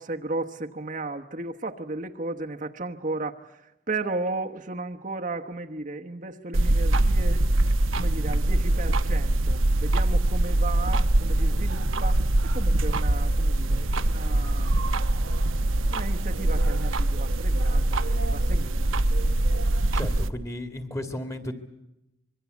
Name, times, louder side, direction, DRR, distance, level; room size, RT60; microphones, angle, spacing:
voice 1, 0.0-7.4 7.9-14.8 15.9-18.7, right 2 dB, 40° right, 3 dB, 1.1 m, -35 dB
sound 1, 6.5-20.3, right 1 dB, 80° right, 1.0 m, -23 dB
voice 2, 19.7-21.5, left 1 dB, 15° left, 7 dB, 2.1 m, -34 dB
25.5 x 22.5 x 8.3 m, 0.90 s
head